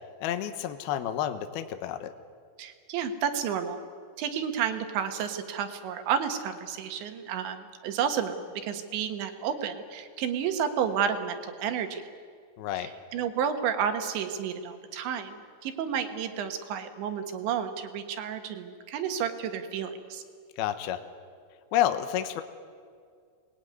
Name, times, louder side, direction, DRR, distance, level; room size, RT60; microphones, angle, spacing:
voice 1, 0.2-2.1 12.6-12.9 20.6-21.0 21.7-22.4, left 11 dB, 75° left, 8 dB, 2.3 m, -29 dB
voice 2, 2.6-3.8 4.2-12.0 12.8-20.2, right 8 dB, 70° right, 7 dB, 3.5 m, -31 dB
26.5 x 20.5 x 9.5 m, 2.1 s
omnidirectional pair, 5.9 m